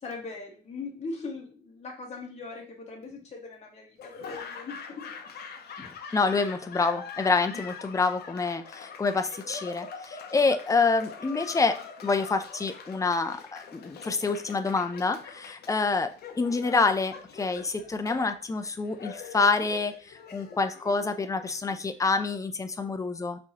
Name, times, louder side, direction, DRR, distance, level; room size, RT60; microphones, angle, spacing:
voice 1, 0.0-4.9 5.3-5.5, left 3 dB, 35° left, -1 dB, 1.6 m, -40 dB
Laughter / Applause, 4.0-22.1, left 6 dB, 60° left, 0.7 m, -44 dB
voice 2, 5.8-23.4, left 4 dB, 15° left, 8 dB, 0.5 m, -27 dB
6.0 x 3.1 x 2.9 m, 0.38 s
cardioid pair, 120°, 19 cm